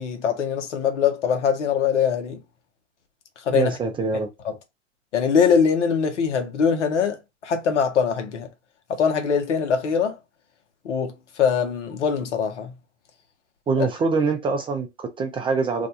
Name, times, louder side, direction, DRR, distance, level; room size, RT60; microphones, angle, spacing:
voice 1, 0.0-2.4 3.4-3.8 4.4-4.5 5.1-8.5 8.9-10.2 10.8-12.7 13.8-13.9, left 6 dB, 75° left, 1.0 m, -22 dB
voice 2, 3.5-4.3 13.7-15.9, right 4 dB, 15° right, 0.4 m, -24 dB
2.6 x 2.2 x 4.0 m
hypercardioid pair, 110°, 35 cm